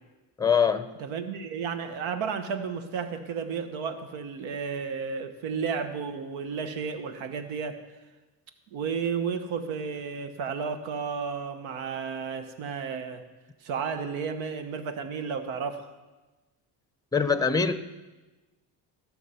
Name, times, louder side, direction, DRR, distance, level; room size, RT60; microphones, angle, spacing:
voice 1, 0.4-0.9 17.1-17.7, left 6 dB, 10° left, 11 dB, 0.8 m, -23 dB
voice 2, 1.0-7.8 8.7-13.2 13.6-15.9, right 6 dB, 80° right, 9 dB, 1.2 m, -32 dB
16.0 x 6.6 x 5.6 m, 1.2 s
supercardioid pair, 80°, 47 cm